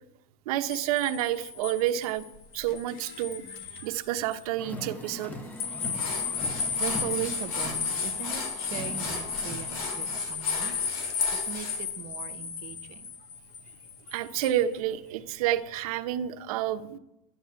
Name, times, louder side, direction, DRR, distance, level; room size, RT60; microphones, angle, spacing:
voice 1, 0.5-2.3 2.5-3.4 3.8-5.3 14.1-17.0, right 12 dB, 80° right, 9 dB, 1.0 m, -29 dB
sound 1, 0.7-3.9 4.3-4.4 5.6-14.6, left 6 dB, 50° left, 1.6 m, -33 dB
Car, 4.6-10.2, left 1 dB, 10° left, 0.8 m, -41 dB
sound 2, 5.4-5.5 5.9-11.8, left 3 dB, 80° left, 6.9 m, -38 dB
voice 2, 6.8-10.8 11.5-13.1, right 11 dB, 40° right, 9 dB, 1.1 m, -38 dB
12.0 x 9.8 x 8.2 m, 0.87 s
cardioid pair, 180°, 19 cm